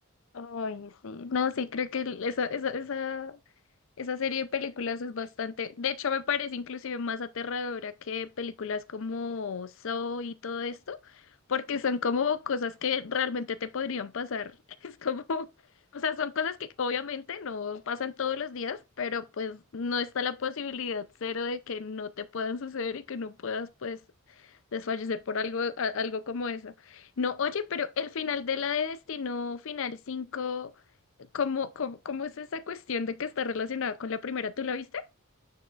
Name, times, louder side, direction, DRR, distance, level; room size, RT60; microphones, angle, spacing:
voice 1, 0.3-3.4 4.0-11.1 11.5-14.6 14.8-15.5 15.9-24.0 24.4-30.7 31.3-35.0, left 5 dB, 65° left, 0.6 m, -32 dB
9.3 x 4.8 x 2.5 m
head